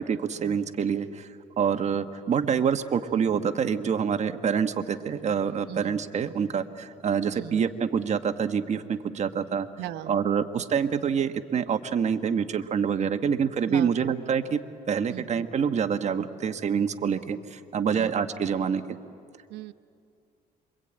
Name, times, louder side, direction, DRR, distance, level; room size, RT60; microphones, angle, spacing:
voice 1, 0.1-1.3 1.6-9.7 10.1-14.6 14.9-18.8, right 7 dB, 40° right, 9 dB, 1.3 m, -26 dB
voice 2, 5.6-6.0 7.3-7.7 9.8-10.2 13.6-14.2 15.1-15.5 17.9-18.1 19.5-19.7, right 13 dB, 80° right, 12 dB, 1.0 m, -39 dB
26.5 x 23.5 x 9.0 m, 2.4 s
cardioid pair, 110°, 17 cm